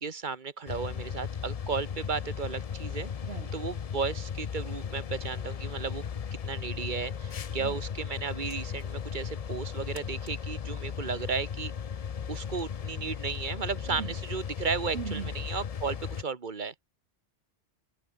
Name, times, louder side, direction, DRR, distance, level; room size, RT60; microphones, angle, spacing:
voice 1, 0.0-3.1 3.5-6.0 6.4-11.7 12.3-16.7, right 5 dB, 40° right, 1.7 m, -34 dB
sound 1, 0.7-16.2, left 7 dB, 45° left, 0.5 m, -36 dB
voice 2, 3.2-3.5 7.6-7.8 13.9-14.1 14.9-15.3, right 7 dB, 60° right, 1.3 m, -38 dB
sound 2, 7.0-14.6, left 2 dB, 60° left, 5.5 m, -61 dB
omnidirectional pair, 1.2 m